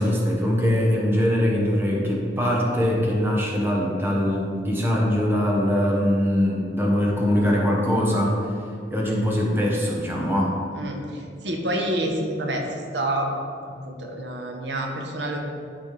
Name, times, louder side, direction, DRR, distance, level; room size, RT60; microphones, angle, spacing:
voice 1, 0.0-8.4 8.9-10.6, equal, 15° right, -3 dB, 0.9 m, -22 dB
voice 2, 11.4-12.6 12.9-13.3 13.7-15.4, right 1 dB, 80° right, 1 dB, 0.9 m, -27 dB
12.0 x 4.1 x 3.3 m, 2.4 s
head